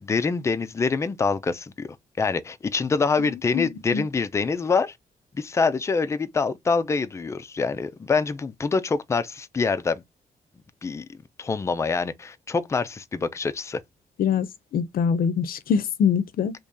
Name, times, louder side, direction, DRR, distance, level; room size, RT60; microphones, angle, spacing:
voice 1, 0.0-5.0 5.3-10.0 10.8-11.0 11.4-13.8, left 4 dB, 20° left, 0.3 m, -25 dB
voice 2, 3.2-4.0 14.2-14.5 14.7-16.5, left 7 dB, 70° left, 0.5 m, -24 dB
2.9 x 2.7 x 3.5 m
wide cardioid pair, 165°, 16 cm